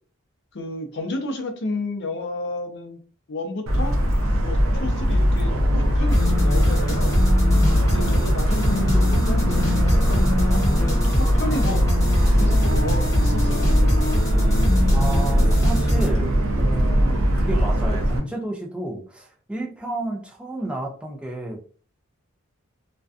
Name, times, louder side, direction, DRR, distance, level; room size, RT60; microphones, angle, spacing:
voice 1, 0.5-3.0 3.3-3.9 4.4-5.5 5.9-7.1 7.8-11.8 12.3-13.9, left 2 dB, 55° left, 4 dB, 0.6 m, -31 dB
Motor vehicle (road) / Siren, 3.7-18.2, equal, 75° right, 0.5 m, -20 dB
sound 1, 6.1-16.1, left 1 dB, 15° left, 0.8 m, -26 dB
voice 2, 14.9-21.6, right 2 dB, 5° right, 0 dB, 0.4 m, -31 dB
2.5 x 2.2 x 2.3 m, 0.41 s
head